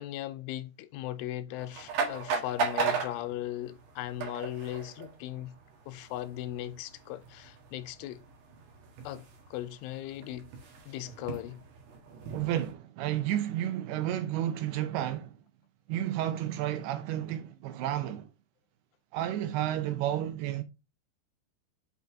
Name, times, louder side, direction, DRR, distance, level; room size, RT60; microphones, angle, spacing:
voice 1, 0.0-5.5 5.9-8.2 9.0-9.3 9.5-10.5 10.9-11.6, left 14 dB, 85° left, 3.0 m, -38 dB
sound 1, 1.6-12.7, right 5 dB, 60° right, 3.4 m, -37 dB
voice 2, 12.3-15.4 15.9-18.3 19.1-20.6, right 12 dB, 80° right, 2.6 m, -31 dB
8.2 x 4.1 x 3.5 m
omnidirectional pair, 5.7 m